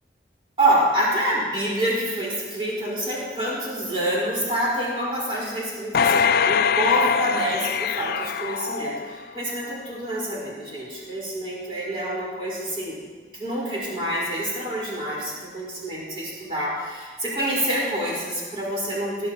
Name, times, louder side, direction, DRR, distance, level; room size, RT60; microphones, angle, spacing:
voice 1, 0.6-13.0 13.3-19.3, right 1 dB, 30° right, -7 dB, 4.4 m, -27 dB
sound 1, 5.9-9.4 9.9-10.0, left 6 dB, 55° left, 0.3 m, -23 dB
19.5 x 10.5 x 2.9 m, 1.5 s
head